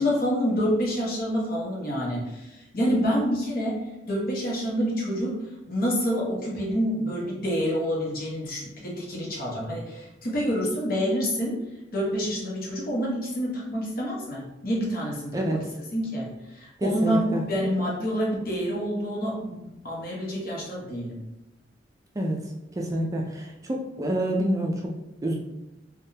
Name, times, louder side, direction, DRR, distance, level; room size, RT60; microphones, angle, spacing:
voice 1, 0.0-5.4 5.7-11.6 11.9-15.6 15.9-21.2, equal, 55° left, -3 dB, 0.9 m, -27 dB
voice 2, 15.3-15.6 16.8-17.4 22.2-22.4 22.7-24.9 25.2-25.3, right 1 dB, 20° right, 0 dB, 0.3 m, -27 dB
3.4 x 2.2 x 2.7 m, 0.94 s
head